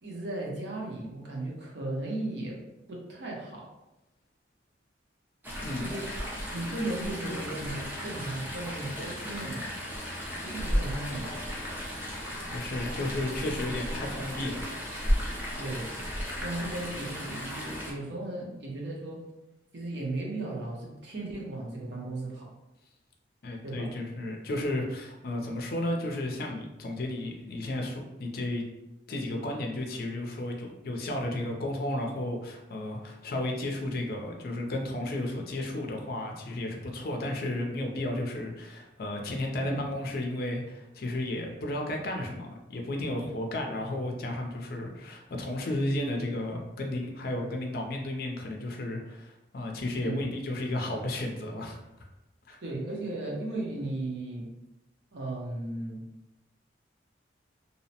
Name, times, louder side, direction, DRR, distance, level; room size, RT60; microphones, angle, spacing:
voice 1, 0.0-2.6 2.9-3.7 5.8-6.1 6.5-9.6 10.4-11.3 15.5-15.9 16.4-19.3 19.7-22.5 23.6-23.9 39.5-39.8 43.5-43.7 49.9-50.2 52.6-54.5 55.1-56.0, right 2 dB, 65° right, -3 dB, 0.7 m, -36 dB
Chatter / Stream, 5.4-17.9, equal, 10° right, 0.4 m, -34 dB
voice 2, 12.5-14.6 23.4-28.7 29.1-51.8 52.5-52.6, left 1 dB, 55° left, 2 dB, 0.4 m, -33 dB
2.7 x 2.0 x 2.8 m, 0.94 s
head